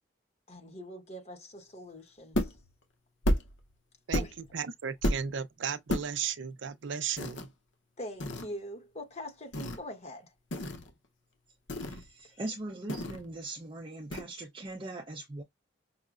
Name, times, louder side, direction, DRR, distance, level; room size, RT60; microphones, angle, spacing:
voice 1, 0.5-2.5 4.1-4.4 8.0-10.3 12.3-12.4, equal, 35° left, 1.1 m, -43 dB
sound 1, 2.3-2.7 3.2-3.6 4.1-4.5 5.0-5.3 5.9-6.1 7.2-7.5 8.2-8.5 9.5-9.8 10.5-10.9 11.7-12.1 12.9-13.3 14.1-14.2, equal, 75° left, 0.8 m, -31 dB
voice 2, 4.5-7.5, right 7 dB, 70° right, 0.5 m, -35 dB
voice 3, 11.8-15.4, right 2 dB, 25° right, 0.5 m, -40 dB
5.5 x 2.0 x 2.4 m
head